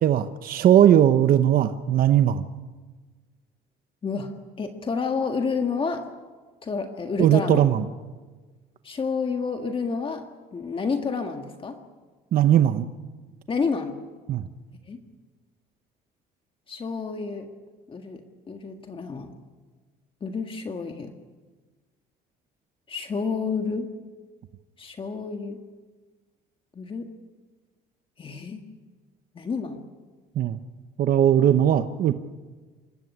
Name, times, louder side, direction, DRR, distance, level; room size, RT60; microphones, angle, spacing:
voice 1, 0.0-2.4 7.2-7.8 12.3-12.9 14.3-14.5 30.3-30.6 31.0-32.1, right 10 dB, 60° right, 10 dB, 0.9 m, -19 dB
voice 2, 4.0-6.0 6.6-7.7 8.8-10.2 10.5-11.8 13.5-14.0 14.9-15.0 16.7-17.5 17.9-19.3 20.2-21.1 22.9-23.9 24.8-25.6 26.7-27.1 28.2-28.7 29.3-29.8, left 5 dB, 30° left, 5 dB, 1.7 m, -29 dB
25.5 x 14.0 x 9.7 m, 1.3 s
cardioid pair, 110°, 17 cm